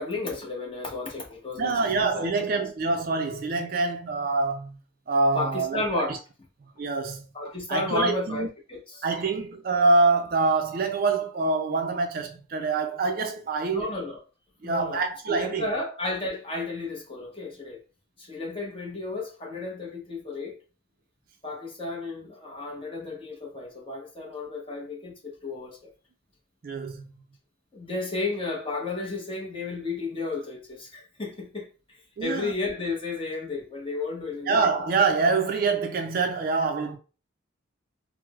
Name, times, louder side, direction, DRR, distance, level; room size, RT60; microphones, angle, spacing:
voice 1, 0.0-2.3 5.3-6.1 7.3-9.1 13.7-14.2 14.6-15.0 15.3-17.8 18.2-20.6 21.4-25.9 27.7-31.7 32.2-34.6, left 3 dB, 25° left, 0.8 m, -33 dB
voice 2, 1.6-4.8 5.1-6.2 6.8-7.2 7.7-8.5 9.0-13.9 14.6-15.6 26.6-27.0 32.2-32.5 34.5-37.0, right 3 dB, 45° right, 0.4 m, -25 dB
4.4 x 2.0 x 2.3 m
head